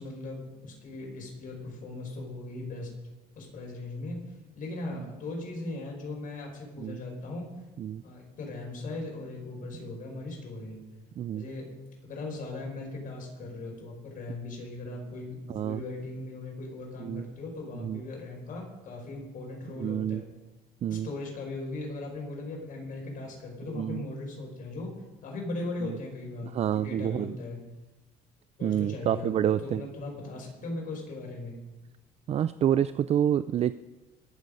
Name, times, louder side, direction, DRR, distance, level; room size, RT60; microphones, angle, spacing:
voice 1, 0.0-2.9 3.4-4.2 4.6-7.5 8.0-10.8 11.3-11.7 12.0-20.3 20.9-24.9 25.2-27.6 28.6-31.6, left 2 dB, 55° left, 0 dB, 5.4 m, -38 dB
voice 2, 15.5-15.8 17.0-17.3 17.8-18.0 19.8-20.2 20.8-21.1 23.7-24.0 25.8-25.9 26.5-27.4 28.6-29.8 32.3-33.7, right 10 dB, 40° right, 15 dB, 0.4 m, -28 dB
22.5 x 7.7 x 5.4 m, 1.1 s
cardioid pair, 110°, 17 cm